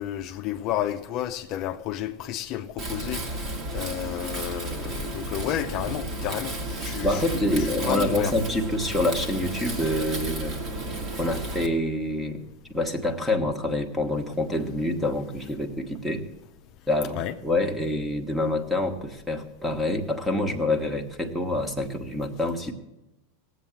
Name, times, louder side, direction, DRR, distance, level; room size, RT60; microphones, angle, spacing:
voice 1, 0.0-8.4 17.1-17.4, left 12 dB, 45° left, 0.6 m, -31 dB
Wind, 2.8-11.7, right 2 dB, 35° right, 2.0 m, -33 dB
voice 2, 7.0-10.5 11.1-12.4 12.7-16.2 16.9-22.7, left 1 dB, 5° right, 1.5 m, -26 dB
18.0 x 8.1 x 7.4 m
supercardioid pair, 135°, 0 cm